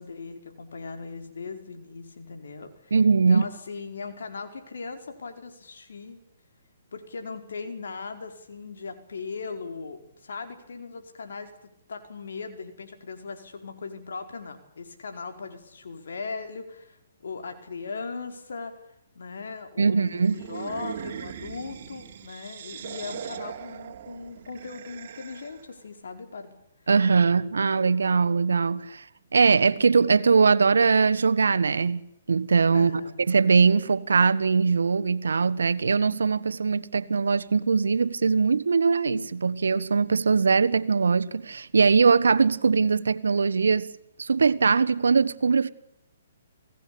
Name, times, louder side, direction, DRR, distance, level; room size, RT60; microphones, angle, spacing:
voice 1, 0.0-2.9 3.3-6.2 6.9-18.7 19.1-26.6 32.7-33.2, left 4 dB, 75° left, 4.8 m, -38 dB
voice 2, 2.9-3.5 19.8-20.4 26.9-29.0 29.3-32.9 33.3-43.9 44.2-45.7, right 5 dB, 85° right, 1.4 m, -21 dB
sound 1, 20.2-25.7, right 9 dB, 50° right, 2.9 m, -40 dB
28.0 x 17.5 x 8.7 m
hypercardioid pair, 145°, 0 cm